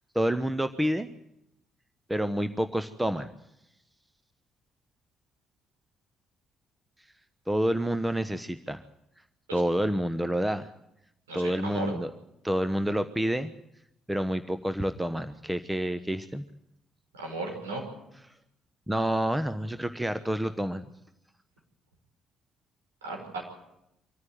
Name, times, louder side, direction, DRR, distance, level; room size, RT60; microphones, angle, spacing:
voice 1, 0.1-1.1 2.1-3.3 7.5-8.8 9.5-10.7 11.3-12.1 12.4-13.5 14.1-16.4 18.9-20.8, right 1 dB, 10° right, 11 dB, 1.1 m, -28 dB
voice 2, 11.3-11.9 17.1-17.8 23.0-23.4, right 2 dB, 75° right, 0 dB, 5.5 m, -35 dB
25.0 x 14.5 x 9.7 m, 0.85 s
figure-of-eight pair, 45°, 0 cm